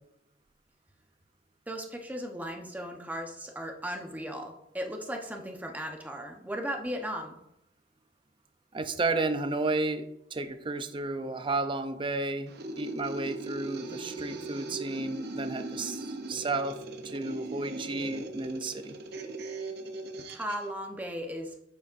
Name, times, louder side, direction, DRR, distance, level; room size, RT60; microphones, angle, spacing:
voice 1, 1.7-7.4 20.3-21.5, equal, 10° right, 2 dB, 1.0 m, -36 dB
voice 2, 8.7-10.1 10.3-16.8 17.0-18.9, right 3 dB, 30° right, 9 dB, 0.6 m, -32 dB
sound 1, 12.5-20.7, right 2 dB, 60° right, 0.7 m, -39 dB
8.4 x 7.0 x 2.6 m, 0.81 s
head